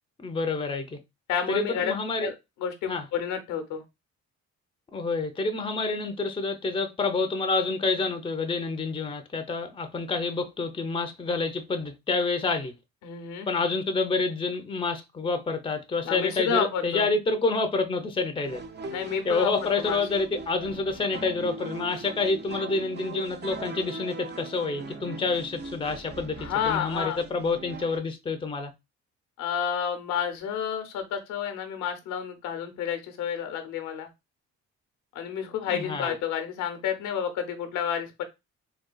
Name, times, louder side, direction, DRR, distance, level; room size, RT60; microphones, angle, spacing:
voice 1, 0.2-1.0 1.5-2.3 2.9-3.1 4.9-12.7 13.5-18.6 19.2-28.7 35.7-36.1, left 3 dB, 20° left, 0.6 m, -28 dB
voice 2, 1.3-1.9 2.2-2.3 2.6-3.8 13.0-13.5 16.0-17.1 18.9-19.5 19.8-20.0 26.4-27.2 29.4-34.1 35.1-38.2, left 8 dB, 90° left, 0.7 m, -30 dB
sound 1, 18.4-28.0, right 3 dB, 35° right, 0.6 m, -40 dB
3.8 x 2.3 x 2.2 m
cardioid pair, 90°, 30 cm